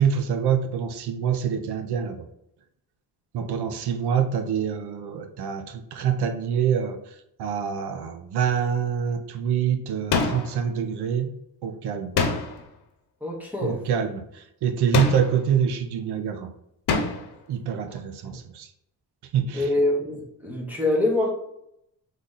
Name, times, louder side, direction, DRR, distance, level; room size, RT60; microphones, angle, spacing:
voice 1, 0.0-2.3 3.3-7.0 7.4-11.3 11.6-12.2 13.6-16.5 17.5-18.7 19.3-19.7, right 7 dB, 80° right, 7 dB, 0.7 m, -26 dB
sound 1, 10.1-10.7 12.2-12.7 14.9-15.5 16.9-17.4, left 4 dB, 85° left, 0.9 m, -25 dB
voice 2, 13.2-13.8 18.2-18.4 19.5-21.3, left 2 dB, 5° right, -3 dB, 0.8 m, -25 dB
4.1 x 3.3 x 3.9 m, 0.78 s
wide cardioid pair, 165°, 38 cm